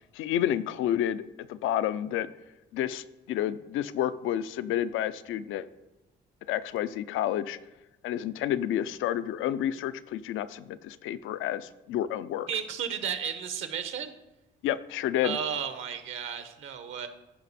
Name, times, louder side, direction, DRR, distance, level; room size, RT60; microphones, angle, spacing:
voice 1, 0.1-1.2 1.5-2.3 2.7-5.7 6.5-7.6 8.0-12.5 14.6-15.4, left 11 dB, 85° left, 14 dB, 0.5 m, -30 dB
voice 2, 12.5-14.1 15.2-17.1, right 7 dB, 80° right, 9 dB, 1.1 m, -33 dB
14.5 x 5.0 x 4.2 m, 1.0 s
cardioid pair, 90°, 20 cm